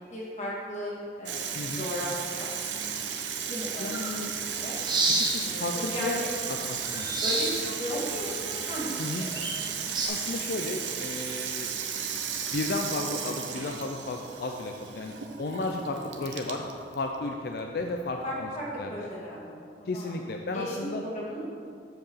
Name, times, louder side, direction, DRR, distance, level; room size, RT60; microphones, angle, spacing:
voice 1, 0.1-3.0 3.4-4.8 5.4-6.3 7.2-9.0 9.2-9.3 18.2-20.2 20.5-21.4, equal, 40° left, -7 dB, 1.9 m, -36 dB
Water tap faucet / Sink (filling or washing), 1.3-18.7, right 7 dB, 85° right, 0.7 m, -35 dB
voice 2, 1.5-1.9 3.8-4.3 5.2-6.2 6.5-7.2 9.0-9.3 10.1-11.7 12.5-15.1 15.4-16.6 16.9-18.5 18.8-19.1 19.9-21.0, left 2 dB, 55° left, 3 dB, 0.5 m, -33 dB
sound 1, 3.9-10.1, right 2 dB, 25° right, 1.0 m, -33 dB
7.8 x 4.7 x 7.1 m, 2.4 s
head